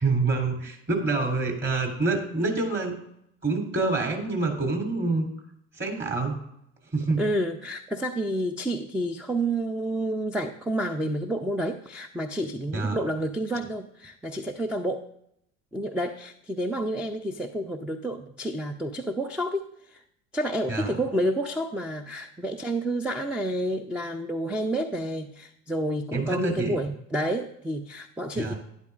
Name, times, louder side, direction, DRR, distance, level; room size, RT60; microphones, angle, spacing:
voice 1, 0.0-3.0 3.4-5.3 5.8-6.4 6.9-7.2 12.7-13.0 20.7-21.0 26.1-26.8 28.4-28.6, right 3 dB, 30° right, 1 dB, 3.4 m, -26 dB
voice 2, 7.2-15.1 15.7-20.0 20.3-28.5, right 1 dB, 5° right, 6 dB, 0.5 m, -29 dB
11.5 x 11.0 x 2.5 m, 0.75 s
hypercardioid pair, 70°, 38 cm